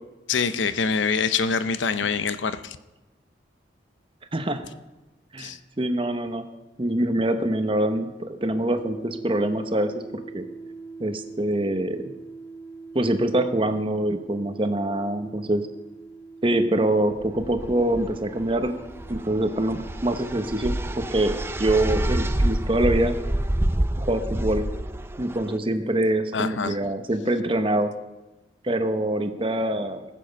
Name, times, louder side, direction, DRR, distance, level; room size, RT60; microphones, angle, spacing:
voice 1, 0.3-2.8 5.4-5.6 26.3-26.9, left 5 dB, 80° left, 12 dB, 0.6 m, -25 dB
voice 2, 4.3-4.6 5.3-6.5 6.8-10.4 11.0-12.0 12.9-15.6 16.4-18.7 19.1-23.1 24.0-24.7 25.2-27.9 28.6-30.1, right 1 dB, 30° right, 8 dB, 0.9 m, -25 dB
sound 1, 8.8-24.3, right 4 dB, 5° left, 1.0 m, -44 dB
sound 2, 17.2-25.5, right 1 dB, 15° right, 0.4 m, -28 dB
19.0 x 7.5 x 5.2 m, 1.1 s
head